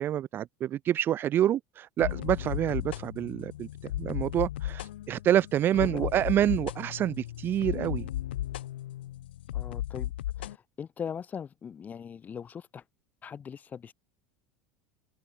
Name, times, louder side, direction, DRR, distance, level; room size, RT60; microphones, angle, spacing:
voice 1, 0.0-3.7 4.0-8.0, right 11 dB, 40° right, 0.7 m, -27 dB
sound 1, 2.0-10.6, left 13 dB, 90° left, 0.7 m, -35 dB
voice 2, 5.8-6.1 9.5-10.1 10.4-12.8 13.2-13.9, left 7 dB, 30° left, 7.9 m, -40 dB
supercardioid pair, 105°, 6 cm